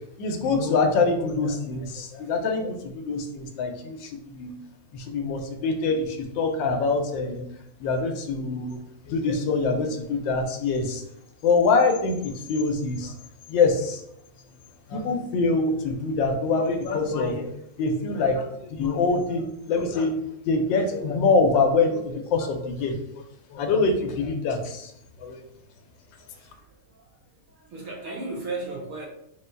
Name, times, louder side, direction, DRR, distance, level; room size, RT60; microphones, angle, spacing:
voice 1, 0.2-4.1 4.4-4.5 4.9-7.5 7.8-8.8 9.1-11.0 11.4-13.1 13.5-14.0 14.9-17.5 17.8-20.1 20.4-23.2 23.5-24.9 25.2-25.4, left 3 dB, 85° left, 4 dB, 1.4 m, -24 dB
voice 2, 26.1-27.0 27.5-29.1, right 3 dB, 55° right, -2 dB, 1.2 m, -36 dB
4.0 x 2.2 x 4.3 m, 0.76 s
omnidirectional pair, 2.0 m